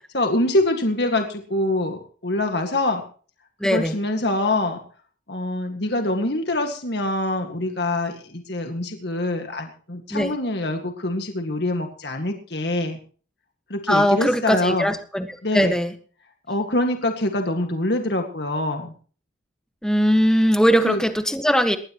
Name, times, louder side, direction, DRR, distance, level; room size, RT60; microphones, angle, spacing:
voice 1, 0.1-3.0 3.6-4.8 5.3-13.0 13.7-15.0 15.4-15.8 16.5-18.9 20.8-21.0, left 1 dB, 60° left, 4 dB, 2.0 m, -24 dB
voice 2, 3.6-4.0 10.1-10.3 13.9-15.3 15.5-15.9 19.8-21.8, equal, 5° left, 7 dB, 1.6 m, -20 dB
20.5 x 19.0 x 3.1 m, 0.43 s
head